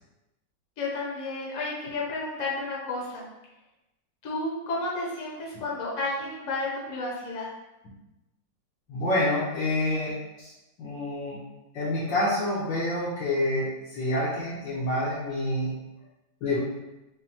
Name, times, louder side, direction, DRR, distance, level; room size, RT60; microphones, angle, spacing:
voice 1, 0.8-3.3 4.2-7.5, left 2 dB, 50° left, -5 dB, 1.1 m, -32 dB
voice 2, 8.9-10.5 10.8-11.4 11.7-15.7 16.4-16.6, left 1 dB, 75° left, -10 dB, 1.6 m, -27 dB
5.5 x 2.2 x 2.8 m, 1.0 s
omnidirectional pair, 2.0 m